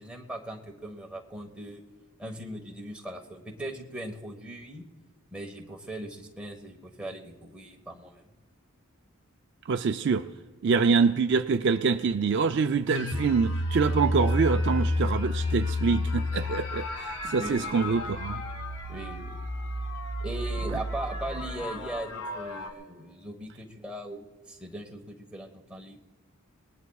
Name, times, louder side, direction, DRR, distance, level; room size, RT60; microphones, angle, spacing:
voice 1, 0.0-1.8 2.2-4.8 5.3-8.3 17.3-17.8 18.9-19.4 20.2-26.0, right 1 dB, 5° right, 1.2 m, -39 dB
voice 2, 9.7-10.3 10.6-18.4, right 5 dB, 55° right, 0.4 m, -25 dB
sound 1, 12.9-22.7, left 1 dB, 85° left, 1.9 m, -31 dB
28.0 x 19.0 x 2.3 m
head